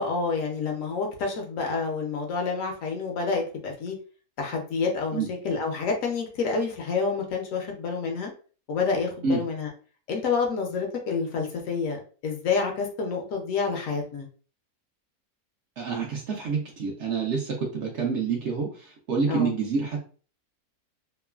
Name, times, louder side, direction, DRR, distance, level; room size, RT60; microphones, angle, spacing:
voice 1, 0.0-4.0 4.4-8.3 8.7-9.7 10.1-14.3 19.3-19.5, left 4 dB, 70° left, 2 dB, 0.9 m, -28 dB
voice 2, 15.8-20.0, right 5 dB, 60° right, 0 dB, 0.8 m, -28 dB
3.0 x 2.1 x 2.3 m, 0.40 s
omnidirectional pair, 1.6 m